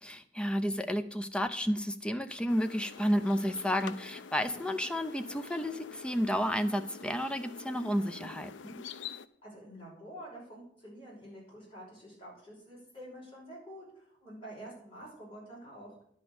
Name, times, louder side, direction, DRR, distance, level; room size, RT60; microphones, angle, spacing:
voice 1, 0.0-8.8, equal, 5° left, 9 dB, 0.6 m, -31 dB
sound 1, 2.5-9.3, left 6 dB, 90° left, 0.5 m, -47 dB
voice 2, 9.4-16.0, right 1 dB, 30° left, -5 dB, 5.6 m, -48 dB
10.5 x 5.2 x 7.9 m, 0.68 s
head